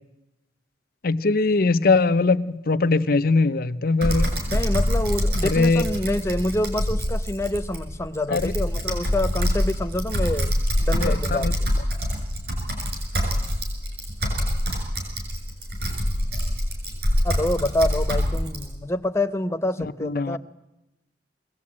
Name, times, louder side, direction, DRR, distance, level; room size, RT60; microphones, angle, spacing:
voice 1, 1.0-4.3 5.4-5.8 8.3-8.5 11.0-11.5 20.0-20.4, left 3 dB, 55° left, 0.7 m, -21 dB
Typing, 4.0-18.6, equal, 60° right, 6.8 m, -25 dB
voice 2, 4.5-10.5 10.8-11.8 17.2-20.4, left 1 dB, 15° left, 0.8 m, -27 dB
21.5 x 18.0 x 8.7 m
head